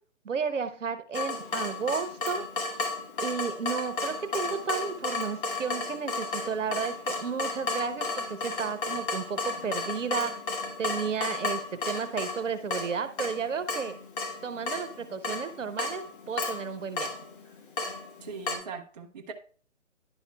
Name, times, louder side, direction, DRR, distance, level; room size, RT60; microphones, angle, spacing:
voice 1, 0.2-2.5 3.2-10.3 10.8-14.0 14.4-17.1, right 6 dB, 80° right, 12 dB, 0.9 m, -33 dB
Water tap faucet / Drip, 1.1-18.6, left 3 dB, 45° left, 1.4 m, -34 dB
voice 2, 18.2-19.3, right 5 dB, 35° right, 4 dB, 0.5 m, -40 dB
10.5 x 5.7 x 2.3 m, 0.43 s
figure-of-eight pair, 140°, 37 cm